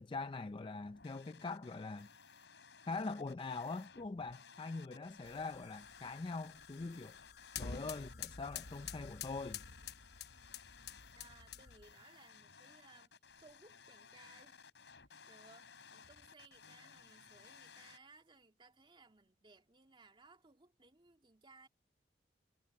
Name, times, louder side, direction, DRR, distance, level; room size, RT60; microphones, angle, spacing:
voice 1, 0.0-2.1 2.8-7.2 7.6-9.6, left 3 dB, 30° left, 0.4 m, -43 dB
sound 1, 0.8-18.0, left 6 dB, 80° left, 3.9 m, -59 dB
sound 2, 5.2-11.9, left 7 dB, 65° left, 1.0 m, -49 dB
voice 2, 11.1-14.6 15.3-21.7, right 3 dB, 30° right, 2.7 m, -63 dB
head